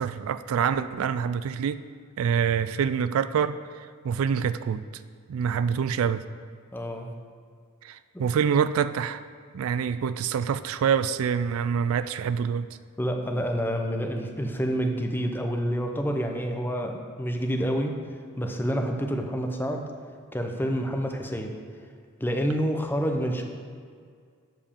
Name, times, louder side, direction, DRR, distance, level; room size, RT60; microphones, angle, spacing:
voice 1, 0.0-1.8 2.2-4.8 5.3-6.2 7.8-9.2 9.5-12.7, right 7 dB, 75° right, 13 dB, 0.3 m, -26 dB
voice 2, 6.7-7.1 8.1-8.2 13.0-18.0 18.4-19.9 20.3-21.6 22.2-23.4, equal, 10° left, 3 dB, 0.6 m, -28 dB
7.7 x 5.1 x 6.8 m, 2.1 s
head